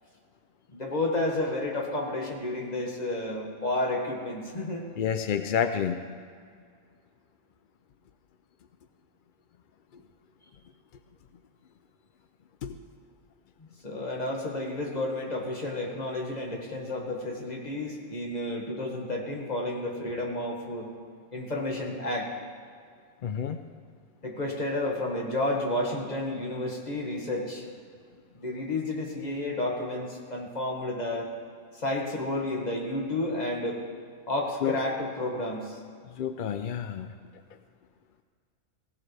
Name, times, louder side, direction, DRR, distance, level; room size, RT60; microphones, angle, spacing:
voice 1, 0.7-4.8 13.8-20.9 21.3-22.3 24.2-27.7 28.3-31.3 31.7-33.8 34.3-35.8, left 1 dB, 30° left, -1 dB, 1.9 m, -31 dB
voice 2, 5.0-6.0 12.6-12.8 23.2-23.6 34.6-34.8 36.2-37.1, left 8 dB, 60° left, 8 dB, 0.5 m, -29 dB
17.5 x 16.5 x 3.4 m, 2.1 s
omnidirectional pair, 1.4 m